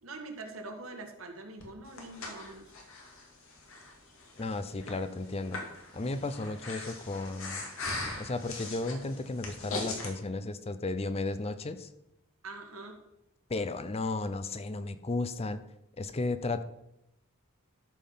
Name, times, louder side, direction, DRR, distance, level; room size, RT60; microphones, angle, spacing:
voice 1, 0.0-2.7 12.4-13.0, right 2 dB, 75° right, 3 dB, 1.8 m, -44 dB
Breathing, 1.6-10.1, left 3 dB, 75° left, 2.5 m, -41 dB
voice 2, 4.4-5.6 5.9-7.6 8.2-11.9 13.5-15.6 16.0-16.6, left 2 dB, 30° left, 11 dB, 0.6 m, -34 dB
13.0 x 5.6 x 5.6 m, 0.85 s
head